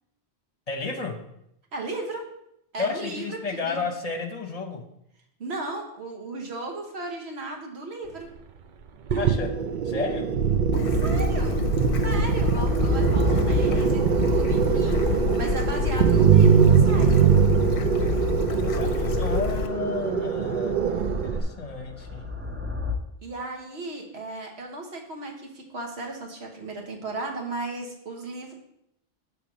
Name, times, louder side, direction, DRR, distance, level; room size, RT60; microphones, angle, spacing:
voice 1, 0.7-1.2 2.8-4.8 9.2-9.5 9.8-10.3 18.6-20.9 21.2-22.3, left 4 dB, 40° left, 4 dB, 1.0 m, -32 dB
voice 2, 1.7-2.3 2.7-3.9 5.4-8.3 10.9-11.6 12.0-17.1 23.2-28.5, right 2 dB, 90° right, 1 dB, 1.5 m, -35 dB
sound 1, 9.1-21.4, right 7 dB, 60° right, 0.6 m, -22 dB
Bird / Stream, 10.7-19.7, left 6 dB, 65° left, 0.8 m, -27 dB
sound 2, 11.2-23.0, left 3 dB, 15° right, 0.5 m, -35 dB
6.8 x 3.5 x 6.0 m, 0.78 s
omnidirectional pair, 1.1 m